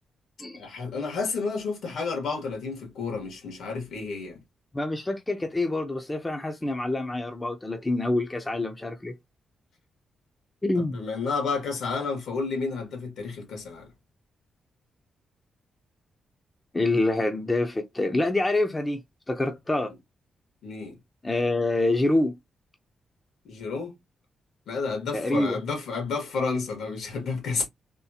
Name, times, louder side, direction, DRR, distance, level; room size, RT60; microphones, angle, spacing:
voice 1, 0.5-4.4 10.9-13.9 20.6-21.0 23.5-24.0 24.7-27.7, left 4 dB, 80° left, 1.8 m, -31 dB
voice 2, 4.7-9.2 10.6-11.0 16.7-19.9 21.2-22.4 25.1-25.6, left 2 dB, 15° left, 0.5 m, -26 dB
3.6 x 2.4 x 2.7 m
cardioid pair, 130°, 0 cm